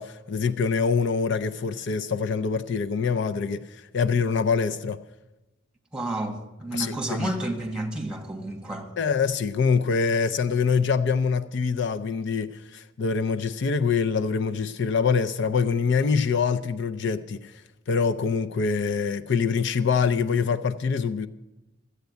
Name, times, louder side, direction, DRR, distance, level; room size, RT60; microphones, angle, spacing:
voice 1, 0.0-3.7 3.9-5.0 6.7-7.3 9.0-17.5 17.9-21.3, left 5 dB, 60° left, 0.5 m, -25 dB
voice 2, 5.9-8.9, right 1 dB, 5° right, 1.4 m, -31 dB
14.5 x 8.1 x 8.0 m
head